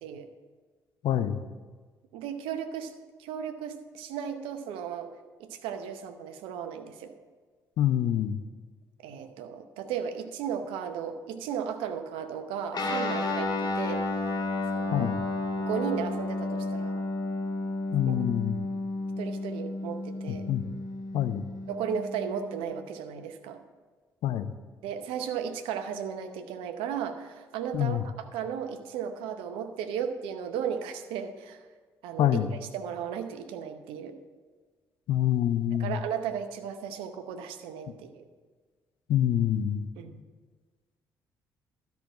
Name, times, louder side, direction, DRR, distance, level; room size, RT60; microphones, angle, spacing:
voice 1, 1.0-1.4 7.8-8.4 14.9-15.2 17.9-18.6 20.3-20.6 21.1-21.4 24.2-24.5 27.7-28.0 32.2-32.5 35.1-36.0 39.1-39.9, left 11 dB, 65° left, 11 dB, 0.7 m, -26 dB
voice 2, 2.1-2.9 3.2-5.1 5.4-7.1 9.0-14.0 14.7-15.1 15.6-17.0 18.0-18.2 19.2-20.5 21.7-23.6 24.8-31.6 32.0-32.4 32.7-34.1 35.8-38.2 40.0-40.2, right 8 dB, 75° right, 8 dB, 0.8 m, -35 dB
Guitar, 12.7-22.6, left 2 dB, 50° left, 2.2 m, -32 dB
12.5 x 5.9 x 7.2 m, 1.4 s
hypercardioid pair, 45°, 9 cm